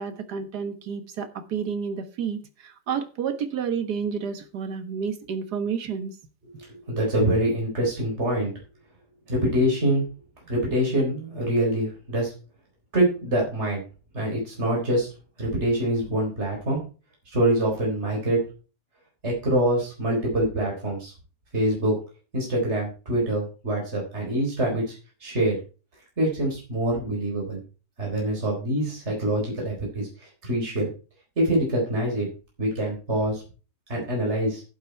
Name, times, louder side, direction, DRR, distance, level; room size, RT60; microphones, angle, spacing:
voice 1, 0.0-6.1, right 6 dB, 80° right, 1.9 m, -30 dB
voice 2, 6.6-8.5 9.3-10.1 10.5-12.3 12.9-13.8 14.1-15.1 15.4-16.8 17.3-18.4 19.2-21.1 21.5-22.0 22.3-25.6 26.2-27.6 28.0-30.1 30.4-30.9 31.4-32.3 32.6-33.4 33.9-34.6, right 1 dB, 40° right, 4.4 m, -25 dB
11.0 x 8.7 x 4.5 m
omnidirectional pair, 1.7 m